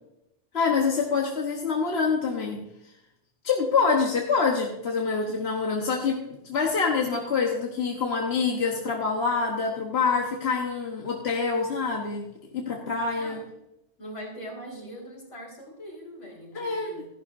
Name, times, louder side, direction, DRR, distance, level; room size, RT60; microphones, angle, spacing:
voice 1, 0.5-2.6 3.4-12.3 12.5-13.4 16.5-17.0, left 5 dB, 60° left, 0 dB, 1.3 m, -26 dB
voice 2, 13.1-13.6 14.0-17.1, equal, 75° left, -2 dB, 3.9 m, -41 dB
14.0 x 11.5 x 2.6 m, 0.86 s
omnidirectional pair, 1.2 m